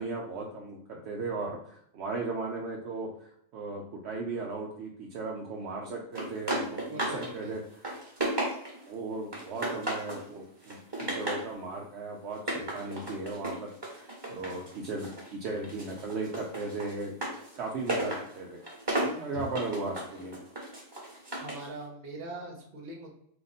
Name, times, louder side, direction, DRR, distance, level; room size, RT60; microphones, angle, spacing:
voice 1, 0.0-7.6 8.8-17.1 17.6-18.6 19.0-20.4, right 3 dB, 60° right, -1 dB, 0.7 m, -37 dB
sound 1, 6.1-7.3 7.6-8.9 9.3-10.2 10.6-11.5 12.3-15.3 15.6-21.7, right 1 dB, 15° right, 1.2 m, -34 dB
voice 2, 6.9-7.5 19.3-19.4 21.3-23.1, right 2 dB, 40° right, 0 dB, 1.1 m, -42 dB
3.7 x 2.9 x 4.0 m, 0.70 s
omnidirectional pair, 1.6 m